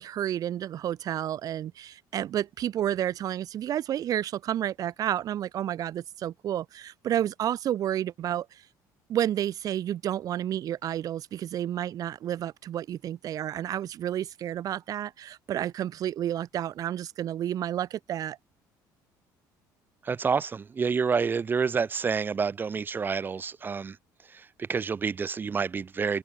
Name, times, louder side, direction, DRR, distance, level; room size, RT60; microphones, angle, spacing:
voice 1, 0.0-8.6 9.1-18.4, right 11 dB, 50° right, 5.9 m, -30 dB
voice 2, 20.0-24.0 24.6-26.2, right 5 dB, 25° right, 2.8 m, -28 dB
cardioid pair, 135°, 8 cm